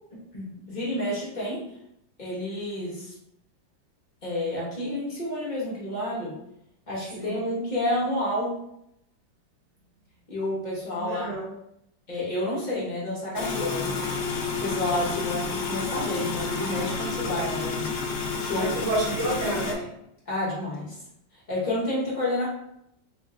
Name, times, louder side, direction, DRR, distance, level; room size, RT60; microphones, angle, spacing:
voice 1, 0.3-1.6 2.2-3.1 4.2-6.3 6.9-8.6 10.3-11.3 12.1-18.0 18.4-18.7 19.3-19.4 20.3-21.0 21.3-22.5, left 1 dB, 35° left, -7 dB, 0.8 m, -30 dB
voice 2, 11.0-11.6 18.5-19.9, right 1 dB, 85° right, -5 dB, 1.9 m, -29 dB
sound 1, 13.3-19.7, left 4 dB, 90° left, 0.7 m, -30 dB
3.8 x 3.0 x 2.3 m, 0.78 s
omnidirectional pair, 2.0 m